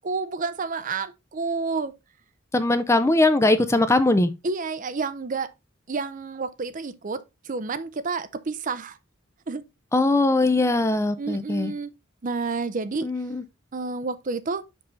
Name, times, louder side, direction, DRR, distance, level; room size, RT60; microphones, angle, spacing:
voice 1, 0.0-2.0 4.4-5.5 5.9-9.0 9.5-9.6 11.2-11.9 12.2-13.1 13.7-14.6, right 4 dB, 40° right, 0.6 m, -30 dB
voice 2, 2.5-4.3 9.9-11.7 13.0-13.4, left 2 dB, 15° left, 0.5 m, -20 dB
5.8 x 5.4 x 3.8 m
head